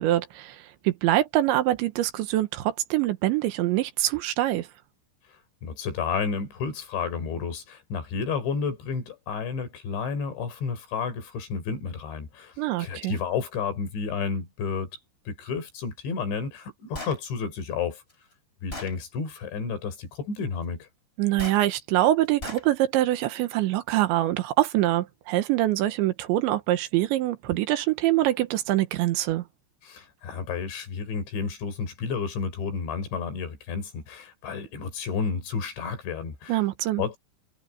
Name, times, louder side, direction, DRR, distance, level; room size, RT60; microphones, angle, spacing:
voice 1, 0.0-4.7 12.6-13.2 21.2-29.4 36.5-37.0, right 15 dB, 85° right, 3.5 m, -24 dB
voice 2, 5.6-12.5 12.8-14.9 15.3-18.0 18.6-20.9 29.8-36.6 37.0-37.2, left 5 dB, 75° left, 6.2 m, -31 dB
Gunshot gunfire, 16.9-17.2 18.1-18.2 18.7-19.0 21.4-21.6 22.4-22.7, left 2 dB, 15° left, 3.5 m, -36 dB
omnidirectional pair, 5.2 m